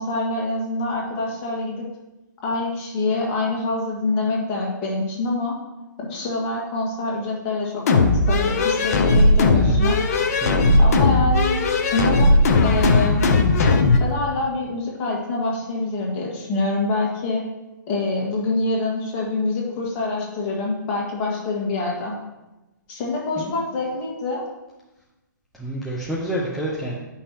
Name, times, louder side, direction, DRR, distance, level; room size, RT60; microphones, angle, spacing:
voice 1, 0.0-1.8 2.4-5.6 6.0-10.0 10.8-11.6 11.9-13.2 14.0-17.4 17.9-22.2 22.9-24.4, left 2 dB, 30° left, -2 dB, 1.9 m, -25 dB
sound 1, 7.9-14.0, left 2 dB, 50° left, 0.9 m, -17 dB
voice 2, 10.4-10.8 23.4-23.5 25.6-26.9, right 1 dB, ahead, -7 dB, 0.9 m, -28 dB
9.6 x 5.7 x 3.0 m, 1.0 s
hypercardioid pair, 135°, 11 cm